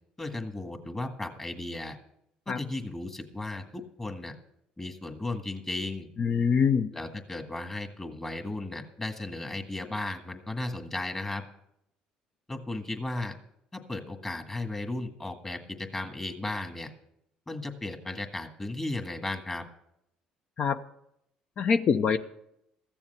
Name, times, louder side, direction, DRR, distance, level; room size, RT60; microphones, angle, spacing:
voice 1, 0.2-2.0 2.4-4.3 4.8-6.1 6.9-11.4 12.5-13.3 13.7-16.9 17.5-19.6, left 2 dB, 20° left, 5 dB, 1.8 m, -35 dB
voice 2, 6.2-6.9 20.6-20.8 21.6-22.2, left 6 dB, 50° left, 10 dB, 0.6 m, -24 dB
14.5 x 7.2 x 6.7 m, 0.78 s
supercardioid pair, 80°, 3 cm